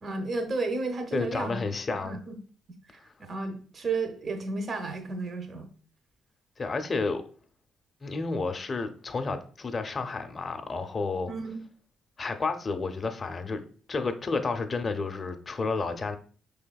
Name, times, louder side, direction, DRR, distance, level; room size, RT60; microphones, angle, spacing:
voice 1, 0.0-1.6 1.9-2.4 2.9-5.7 11.3-11.6, right 3 dB, 45° right, 0.7 m, -33 dB
voice 2, 1.1-2.2 6.6-7.2 8.0-11.3 12.2-16.2, left 4 dB, 35° left, 0.5 m, -31 dB
5.4 x 3.4 x 2.2 m
cardioid pair, 90°, 0 cm